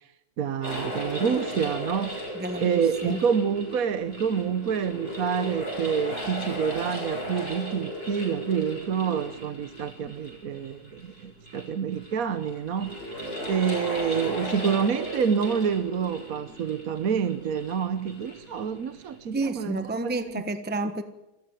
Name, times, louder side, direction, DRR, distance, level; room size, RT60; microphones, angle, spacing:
voice 1, 0.4-2.2 2.6-13.0 13.5-20.1, right 7 dB, 60° right, 11 dB, 1.3 m, -27 dB
sound 1, 0.6-19.2, equal, 35° left, 8.3 m, -36 dB
voice 2, 2.3-3.2 19.3-21.0, right 2 dB, 5° right, 9 dB, 1.1 m, -30 dB
27.5 x 15.5 x 9.1 m, 0.95 s
omnidirectional pair, 1.8 m